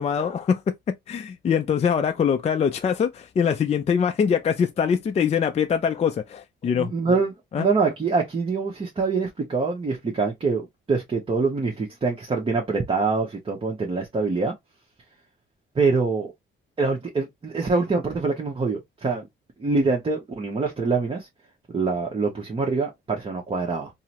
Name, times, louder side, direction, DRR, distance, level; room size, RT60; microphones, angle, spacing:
voice 1, 0.0-6.9 7.5-7.7, left 7 dB, 35° left, 0.4 m, -23 dB
voice 2, 6.8-7.3 7.6-14.5 15.7-16.3 16.8-19.3 19.6-21.3 21.7-23.9, right 4 dB, 30° right, 0.9 m, -24 dB
3.8 x 2.1 x 2.9 m
cardioid pair, 90°, 20 cm